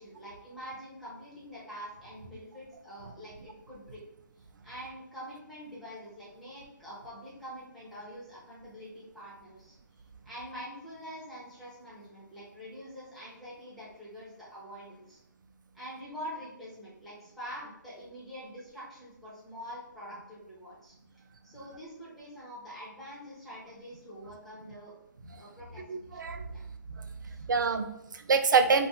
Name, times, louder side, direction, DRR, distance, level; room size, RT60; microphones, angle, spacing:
voice 1, 0.0-4.0 4.6-9.8 10.2-15.2 15.7-20.9 21.4-24.9 25.4-26.2 26.5-26.6 27.3-27.4, equal, ahead, -9 dB, 0.4 m, -45 dB
voice 2, 25.9-26.4 26.9-27.0 27.4-28.9, right 5 dB, 70° right, 7 dB, 0.4 m, -26 dB
2.5 x 2.2 x 2.9 m, 0.81 s
hypercardioid pair, 165°, 11 cm